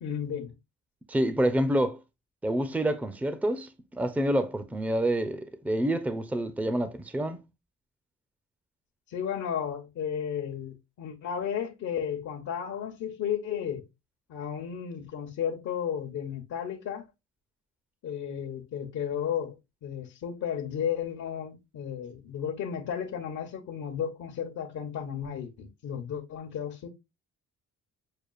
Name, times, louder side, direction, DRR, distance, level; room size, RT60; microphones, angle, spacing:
voice 1, 0.0-0.5 9.1-13.8 14.3-17.0 18.0-19.5 19.8-26.9, left 8 dB, 65° left, 1.0 m, -33 dB
voice 2, 1.1-2.0 2.4-7.4, right 1 dB, 5° right, 0.6 m, -27 dB
6.6 x 2.4 x 2.3 m
cardioid pair, 90°, 30 cm